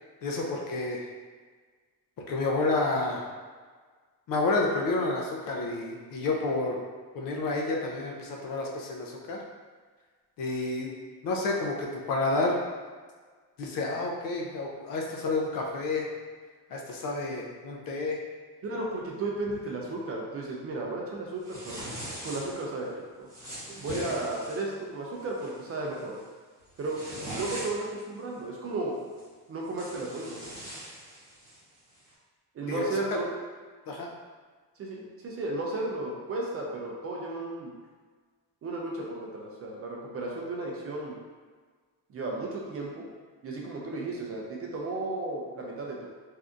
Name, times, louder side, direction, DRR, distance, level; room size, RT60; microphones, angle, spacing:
voice 1, 0.2-1.1 2.3-3.2 4.3-6.8 7.1-9.4 10.4-10.9 11.2-12.6 13.6-16.1 16.7-18.2 23.9-24.1 32.7-32.8 33.1-33.2 33.9-34.1, left 2 dB, 60° left, 0 dB, 0.6 m, -30 dB
voice 2, 18.6-22.0 22.2-23.3 23.7-26.2 26.8-27.0 27.3-29.0 29.5-30.4 32.5-33.3 34.8-37.7 38.6-41.2 42.1-43.1 43.4-46.1, right 2 dB, 35° right, -2 dB, 0.4 m, -34 dB
sound 1, 21.4-22.6 23.3-24.7 25.2-25.5 25.9-26.2 26.6-28.0 29.2-29.3 29.6-31.6, right 1 dB, 10° right, 1.1 m, -41 dB
3.4 x 2.6 x 2.4 m, 1.5 s
cardioid pair, 160°, 39 cm